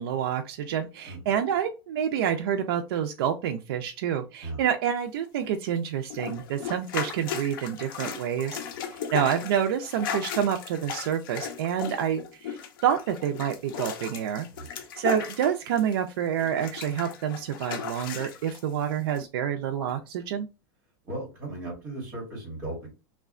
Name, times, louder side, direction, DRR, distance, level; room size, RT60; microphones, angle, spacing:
voice 1, 0.0-8.6 8.9-12.6 12.8-14.5 14.7-20.5, right 9 dB, 75° right, 5 dB, 0.4 m, -28 dB
sound 1, 6.1-16.1 16.4-18.6 19.2-19.3, left 7 dB, 60° left, 0.5 m, -36 dB
voice 2, 21.0-22.9, right 2 dB, 20° right, -2 dB, 1.2 m, -36 dB
2.7 x 2.1 x 2.4 m, 0.29 s
supercardioid pair, 175°, 12 cm